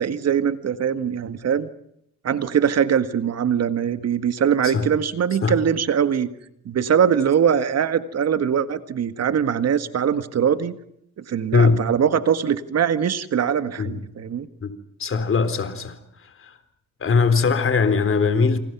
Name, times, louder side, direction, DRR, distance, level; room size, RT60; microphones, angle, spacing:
voice 1, 0.0-1.7 2.2-6.3 6.7-10.7 11.2-14.5, right 8 dB, 55° right, 1.8 m, -22 dB
voice 2, 11.5-11.8 13.8-14.0 14.6-14.7 15.0-16.0 16.4-16.5 17.0-18.6, left 5 dB, 45° left, 3.8 m, -20 dB
28.5 x 27.5 x 6.1 m
cardioid pair, 90°, 30 cm